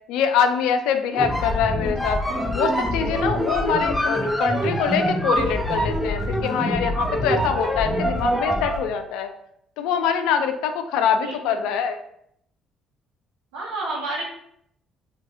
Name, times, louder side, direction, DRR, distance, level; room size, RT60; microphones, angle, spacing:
voice 1, 0.1-2.2 2.5-9.3 9.8-12.0, left 7 dB, 70° left, 7 dB, 0.3 m, -24 dB
sound 1, 1.1-8.9, equal, 10° left, 0.5 m, -24 dB
voice 2, 11.1-11.5 13.5-14.2, right 2 dB, 75° right, -3 dB, 1.0 m, -30 dB
2.6 x 2.4 x 3.6 m, 0.72 s
hypercardioid pair, 50°, 0 cm